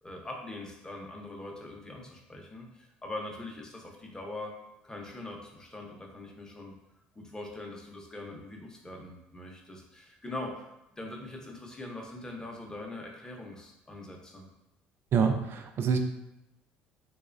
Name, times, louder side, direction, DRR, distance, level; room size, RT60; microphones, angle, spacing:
voice 1, 0.0-4.5 4.8-6.7 7.2-10.7 11.0-14.5, left 2 dB, 15° left, 0 dB, 0.6 m, -42 dB
voice 2, 15.1-16.0, right 6 dB, 55° right, 5 dB, 0.4 m, -26 dB
3.0 x 2.0 x 2.4 m, 0.90 s
supercardioid pair, 75°, 5 cm